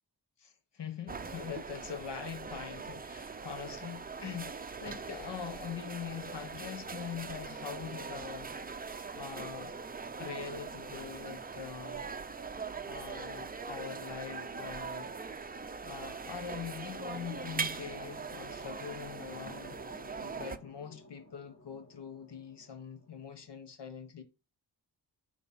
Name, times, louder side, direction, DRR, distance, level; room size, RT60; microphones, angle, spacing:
voice 1, 0.4-9.8 10.2-12.1 12.8-15.1 15.8-19.8 20.2-24.2, left 7 dB, 75° left, 1.4 m, -43 dB
sound 1, 1.1-20.6, right 5 dB, 20° right, 0.5 m, -41 dB
sound 2, 16.4-23.5, left 1 dB, 30° left, 2.3 m, -54 dB
9.7 x 3.5 x 5.6 m
wide cardioid pair, 150°, 42 cm